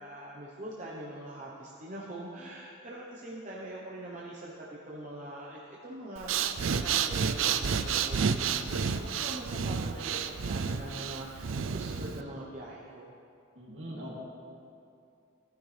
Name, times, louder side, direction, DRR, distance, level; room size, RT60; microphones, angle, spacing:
voice 1, 0.0-10.2 10.5-13.1, right 1 dB, 40° right, -5 dB, 1.0 m, -43 dB
Breathing, 6.2-12.2, right 6 dB, 85° right, 0.5 m, -30 dB
voice 2, 13.5-14.2, equal, 65° right, -5 dB, 2.7 m, -41 dB
15.5 x 10.5 x 3.4 m, 2.6 s
head